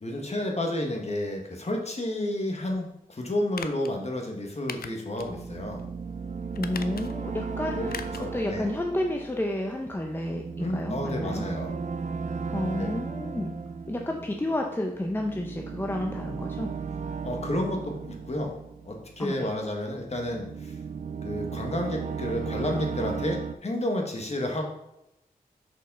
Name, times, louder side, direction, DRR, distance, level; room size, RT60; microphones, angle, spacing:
voice 1, 0.0-5.8 7.7-8.6 10.6-11.7 12.8-12.9 17.2-18.5 18.8-20.8 21.2-24.6, left 1 dB, 45° left, 1 dB, 1.6 m, -31 dB
sound 1, 3.5-3.9 4.7-5.3 5.7-5.8 6.5-7.3 7.9-8.3 8.6-8.7, left 6 dB, 75° left, 0.5 m, -39 dB
sound 2, 5.2-19.5 20.0-23.6, right 5 dB, 50° right, 0.5 m, -36 dB
voice 2, 6.6-11.4 12.5-13.5 13.9-16.7 19.2-19.5, left 1 dB, 15° left, 2 dB, 0.7 m, -31 dB
6.4 x 5.4 x 3.9 m, 0.85 s
wide cardioid pair, 80°, 16 cm